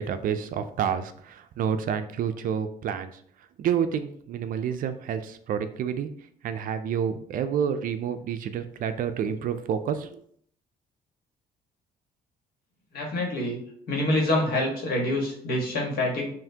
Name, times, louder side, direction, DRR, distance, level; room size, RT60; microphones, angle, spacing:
voice 1, 0.0-3.1 3.6-6.1 6.4-10.2, right 8 dB, 55° right, 10 dB, 0.4 m, -29 dB
voice 2, 12.9-13.6 13.9-16.3, left 1 dB, 65° left, -1 dB, 1.5 m, -26 dB
5.6 x 2.6 x 2.8 m, 0.64 s
cardioid pair, 110°, 17 cm